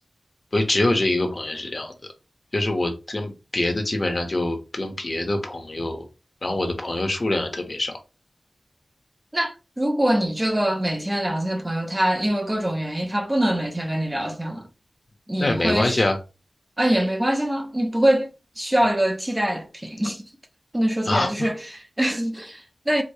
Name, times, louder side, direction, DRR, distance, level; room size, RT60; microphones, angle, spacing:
voice 1, 0.5-1.9 2.5-6.1 6.4-7.9 15.4-16.2 21.1-21.5, left 2 dB, 35° left, 0.7 m, -24 dB
voice 2, 9.3-14.7 15.3-16.0 16.8-18.3 18.6-20.3 20.7-23.0, right 1 dB, 15° right, 0.5 m, -24 dB
4.7 x 2.1 x 2.7 m
wide cardioid pair, 105°, 0 cm